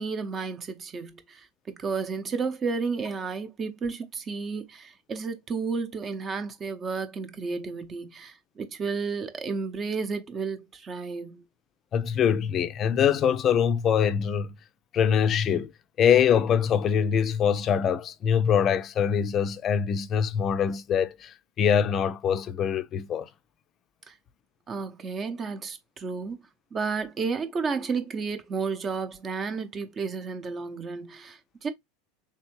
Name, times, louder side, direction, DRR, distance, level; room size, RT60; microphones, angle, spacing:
voice 1, 0.0-11.4 24.1-24.2 24.7-26.4 26.7-31.7, right 4 dB, 30° right, 0.8 m, -32 dB
voice 2, 11.9-14.5 14.9-15.7 16.0-23.3, left 8 dB, 40° left, 0.5 m, -24 dB
3.5 x 3.2 x 3.0 m
hypercardioid pair, 85°, 0 cm